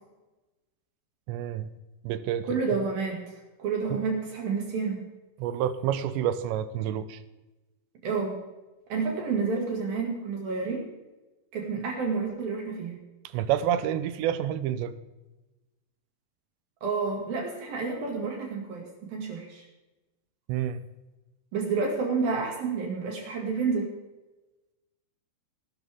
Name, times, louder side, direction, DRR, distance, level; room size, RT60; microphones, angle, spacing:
voice 1, 1.3-1.7 2.0-2.6 3.9-4.0 5.4-7.2 13.3-14.9 20.5-20.8, right 10 dB, 85° right, 13 dB, 2.9 m, -28 dB
voice 2, 2.4-3.2 3.6-5.1 8.0-8.4 8.9-10.8 11.5-13.0 16.8-19.6 21.5-23.9, right 4 dB, 60° right, 0 dB, 3.7 m, -29 dB
19.0 x 12.0 x 3.6 m, 1.1 s
omnidirectional pair, 5.2 m